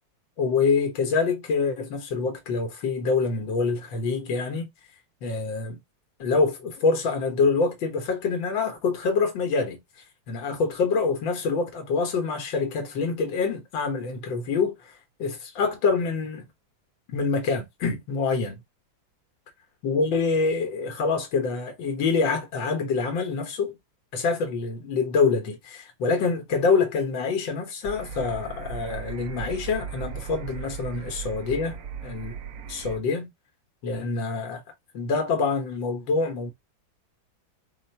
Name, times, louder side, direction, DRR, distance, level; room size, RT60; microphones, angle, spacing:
voice 1, 0.4-4.7 5.2-5.8 6.2-9.8 10.3-14.8 15.2-16.5 17.1-18.6 19.8-23.8 24.1-32.4 32.7-33.3 33.8-34.6 34.9-36.5, left 4 dB, 80° left, 1.9 m, -26 dB
sound 1, 27.8-33.0, right 7 dB, 60° right, 1.0 m, -37 dB
4.4 x 2.5 x 4.4 m
omnidirectional pair, 2.1 m